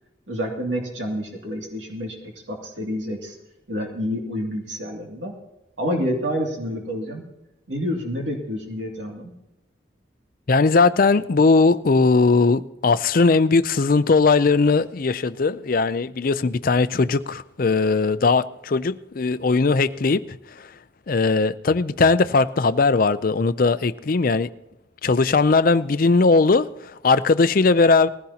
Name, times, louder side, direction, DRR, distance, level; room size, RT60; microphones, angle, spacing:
voice 1, 0.3-3.4 3.7-5.3 5.8-7.2 7.7-9.3, equal, 75° right, 2.4 m, -28 dB
voice 2, 10.5-20.7 21.1-24.5 25.0-28.1, left 4 dB, 50° left, 0.5 m, -19 dB
19.5 x 16.0 x 2.9 m
head